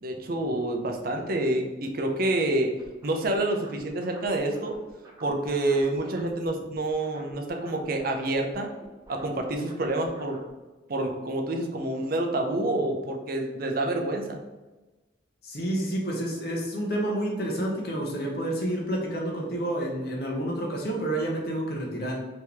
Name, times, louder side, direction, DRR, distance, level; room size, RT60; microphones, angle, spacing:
voice 1, 0.0-2.7 3.0-4.8 5.2-8.7 9.1-10.4 10.9-14.4, right 2 dB, 50° right, 3 dB, 0.6 m, -28 dB
sound 1, 2.8-6.5 6.7-10.5, right 1 dB, 20° right, 0.9 m, -50 dB
voice 2, 15.4-22.3, right 1 dB, 55° left, -1 dB, 1.0 m, -29 dB
4.6 x 3.0 x 3.5 m, 1.2 s
head